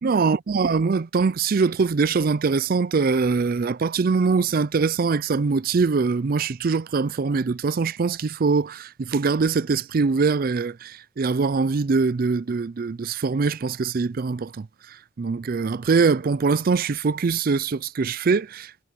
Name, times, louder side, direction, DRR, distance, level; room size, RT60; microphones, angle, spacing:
voice 1, 0.0-14.7 15.2-18.8, right 4 dB, 50° right, 0.4 m, -23 dB
head